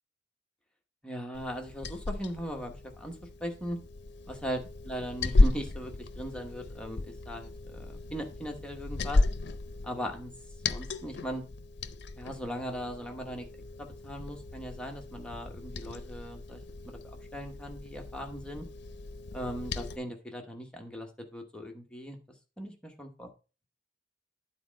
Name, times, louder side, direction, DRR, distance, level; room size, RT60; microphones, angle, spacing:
voice 1, 1.0-3.8 4.3-9.2 9.8-10.3 10.7-11.4 12.2-13.5 13.8-16.6 16.9-18.6 19.3-22.2 22.6-23.3, equal, 5° left, 2 dB, 1.0 m, -39 dB
Liquid, 1.3-20.0, left 2 dB, 65° left, 0.6 m, -33 dB
9.7 x 4.2 x 5.1 m, 0.34 s
head